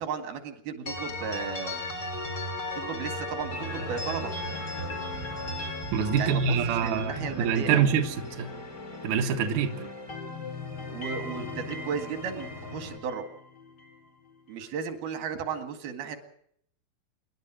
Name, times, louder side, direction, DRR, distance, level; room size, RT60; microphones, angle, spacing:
voice 1, 0.0-1.8 2.7-4.3 6.2-7.9 10.9-13.3 14.5-16.2, right 6 dB, 85° right, 8 dB, 3.9 m, -35 dB
sound 1, 0.9-9.6 9.9-14.0, left 2 dB, 25° left, 4.4 m, -37 dB
sound 2, 3.5-13.0, left 2 dB, 10° left, 2.6 m, -43 dB
voice 2, 5.9-8.5 9.0-9.7, right 7 dB, 65° right, 4 dB, 2.8 m, -25 dB
27.5 x 11.5 x 9.1 m, 0.69 s
omnidirectional pair, 4.2 m